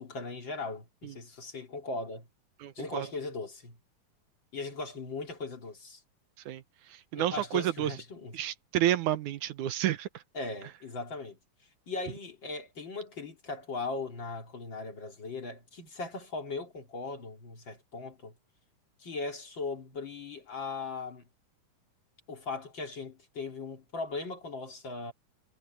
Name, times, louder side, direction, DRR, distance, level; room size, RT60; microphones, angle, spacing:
voice 1, 0.0-2.3 2.7-3.8 4.5-6.0 7.1-8.4 10.3-11.4 11.9-18.3 19.0-21.2 22.3-25.1, left 3 dB, 40° left, 3.2 m, -38 dB
voice 2, 2.6-3.1 6.5-6.6 7.1-7.9 8.3-10.1, right 12 dB, 80° right, 2.4 m, -30 dB
omnidirectional pair, 3.6 m